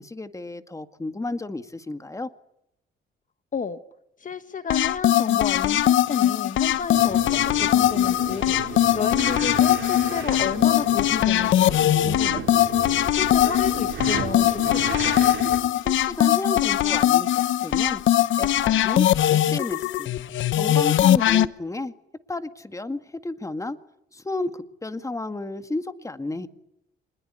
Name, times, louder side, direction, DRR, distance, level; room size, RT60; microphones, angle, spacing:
voice 1, 0.0-2.3 15.8-18.0 18.4-20.1 20.5-21.9 22.3-23.8 24.1-26.5, left 2 dB, 15° left, 10 dB, 2.0 m, -32 dB
voice 2, 4.2-12.5 12.9-15.2, left 6 dB, 40° left, 11 dB, 1.4 m, -32 dB
sound 1, 4.7-21.5, left 12 dB, 75° left, 1.0 m, -21 dB
sound 2, 6.9-15.6, right 8 dB, 65° right, 4.7 m, -35 dB
26.0 x 21.0 x 9.9 m, 0.84 s
cardioid pair, 90°, 20 cm